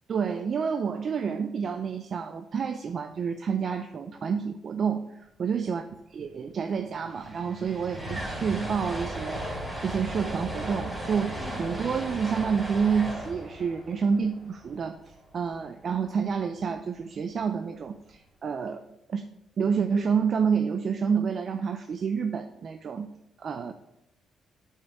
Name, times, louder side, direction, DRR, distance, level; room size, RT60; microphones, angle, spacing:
voice 1, 0.1-5.9 6.1-15.0 15.3-18.8 19.1-19.3 19.6-23.1 23.4-23.7, right 6 dB, 50° right, 8 dB, 0.6 m, -29 dB
sound 1, 6.8-15.1, right 1 dB, 10° right, 4.0 m, -36 dB
8.2 x 5.7 x 7.1 m, 0.85 s
cardioid pair, 90°, 0 cm